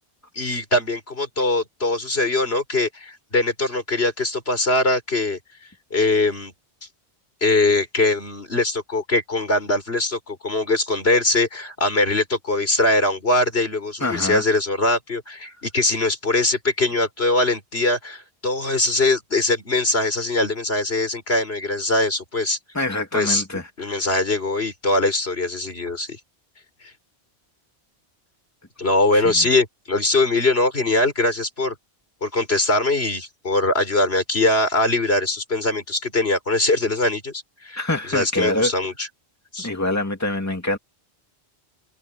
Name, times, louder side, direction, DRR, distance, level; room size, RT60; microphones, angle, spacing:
voice 1, 0.4-5.4 5.9-6.5 7.4-22.6 23.1-23.4 23.8-26.2 28.8-31.7 32.2-37.8 38.1-39.1 39.5-39.7, left 2 dB, 75° left, 4.5 m, -22 dB
voice 2, 14.0-14.4 22.7-24.0 29.1-29.5 37.8-38.7 39.6-40.8, left 2 dB, 15° left, 2.6 m, -25 dB
omnidirectional pair, 1.1 m